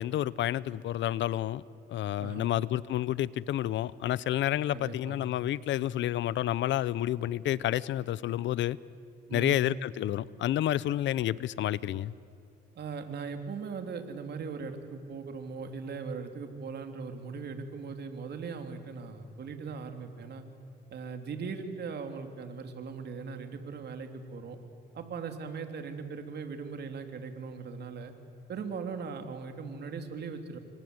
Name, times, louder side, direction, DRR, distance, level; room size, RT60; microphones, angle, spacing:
voice 1, 0.0-1.6 1.9-8.8 9.3-12.1, left 13 dB, 75° left, 20 dB, 0.8 m, -30 dB
voice 2, 2.2-2.5 4.7-5.2 9.3-9.6 12.7-20.4 20.9-24.6 24.9-28.1 28.5-30.6, right 5 dB, 60° right, 6 dB, 3.2 m, -39 dB
29.0 x 24.5 x 8.1 m, 2.5 s
cardioid pair, 90°, 20 cm